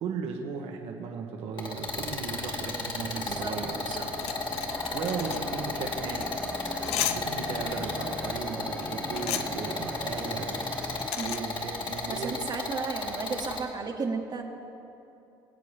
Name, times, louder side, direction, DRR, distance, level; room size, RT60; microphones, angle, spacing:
voice 1, 0.0-3.7 4.9-10.7 11.2-12.3, right 5 dB, 65° right, 1 dB, 1.4 m, -36 dB
sound 1, 1.6-13.6, left 3 dB, 45° left, 2.2 m, -34 dB
sound 2, 3.1-11.1, left 1 dB, 10° left, 0.8 m, -41 dB
voice 2, 3.1-4.1 11.2-11.3 12.1-14.4, right 4 dB, 40° right, 1 dB, 1.5 m, -34 dB
sound 3, 3.3-12.2, left 10 dB, 70° left, 0.6 m, -38 dB
24.5 x 8.5 x 3.5 m, 2.8 s
hypercardioid pair, 65°, 11 cm